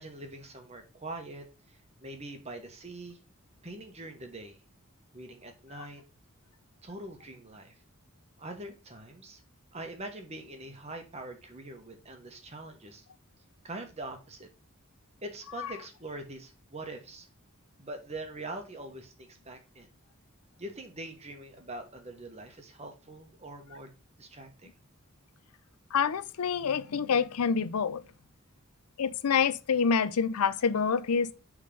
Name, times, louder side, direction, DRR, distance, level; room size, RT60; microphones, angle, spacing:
voice 1, 0.0-3.2 3.6-4.6 5.1-6.0 6.8-7.7 8.4-9.4 9.7-13.0 13.6-14.5 15.2-17.3 17.8-19.9 20.6-23.9 24.2-24.7, right 2 dB, 30° right, 1.1 m, -43 dB
voice 2, 25.9-28.0 29.0-31.3, left 6 dB, 90° left, 0.5 m, -27 dB
5.3 x 3.6 x 5.2 m
head